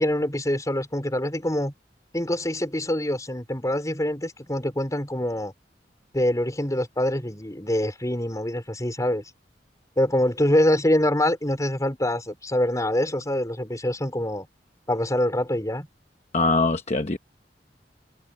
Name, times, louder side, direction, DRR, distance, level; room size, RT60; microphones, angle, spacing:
voice 1, 0.0-1.7 2.1-5.5 6.1-9.2 10.0-14.5 14.9-15.9, left 1 dB, 20° left, 4.9 m, -25 dB
voice 2, 16.3-17.2, left 3 dB, 40° left, 0.9 m, -22 dB
head